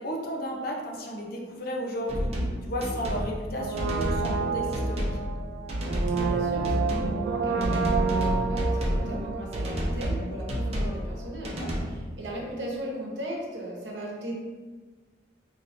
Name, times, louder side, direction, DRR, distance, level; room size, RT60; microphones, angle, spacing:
voice 1, 0.0-2.3 2.6-5.1 8.9-9.2 11.6-11.7, equal, 55° left, 0 dB, 0.6 m, -33 dB
sound 1, 2.1-2.5 2.8-3.3 3.8-4.4 4.7-5.2 5.7-6.4 6.6-7.1 7.6-9.0 9.5-10.2 10.5-11.0 11.4-11.8, equal, 35° right, 0.7 m, -29 dB
Brass instrument, 3.5-10.4 10.6-10.7, right 5 dB, 90° right, 0.3 m, -30 dB
voice 2, 6.1-14.3, right 1 dB, 70° right, -2 dB, 1.0 m, -37 dB
4.7 x 2.9 x 2.6 m, 1.4 s
head